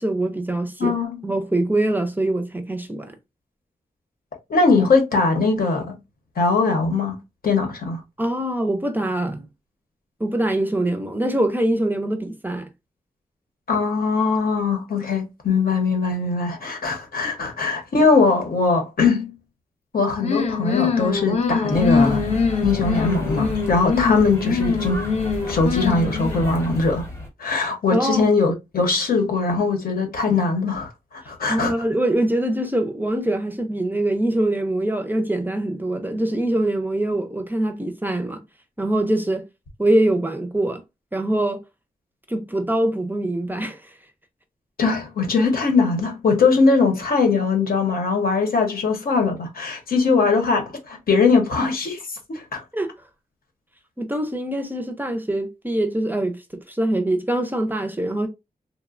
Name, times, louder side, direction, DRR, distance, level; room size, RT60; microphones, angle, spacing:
voice 1, 0.0-0.9 1.2-3.1 8.2-9.5 10.2-12.7 17.2-17.3 27.9-28.3 31.5-38.4 38.8-39.4 39.8-40.8 41.1-41.6 42.3-43.8 52.7-52.9 54.0-58.3, right 1 dB, 15° right, 0.4 m, -23 dB
voice 2, 0.8-1.2 4.5-5.9 6.4-7.1 7.4-8.0 13.7-19.4 19.9-22.4 22.6-25.1 25.5-27.0 27.4-30.9 31.3-31.7 44.8-52.0 52.3-52.6, left 4 dB, 85° left, 0.8 m, -21 dB
sound 1, 20.2-26.6, left 5 dB, 45° left, 0.5 m, -23 dB
sound 2, 21.7-27.3, equal, 20° left, 0.8 m, -32 dB
2.9 x 2.0 x 2.3 m
wide cardioid pair, 110°, 15 cm